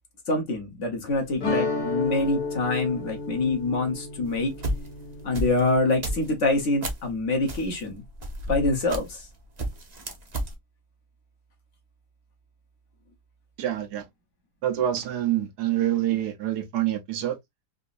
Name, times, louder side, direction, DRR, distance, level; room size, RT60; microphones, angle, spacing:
voice 1, 0.3-4.5 5.2-8.0 8.5-9.2, left 2 dB, 50° left, 1.3 m, -25 dB
sound 1, 1.4-6.3, left 3 dB, 65° left, 1.6 m, -32 dB
sound 2, 4.3-7.1 7.5-9.3 9.6-10.5, right 1 dB, 35° right, 0.7 m, -32 dB
voice 2, 13.6-14.0 14.6-17.4, right 12 dB, 80° right, 1.3 m, -26 dB
3.9 x 2.7 x 2.4 m
omnidirectional pair, 1.7 m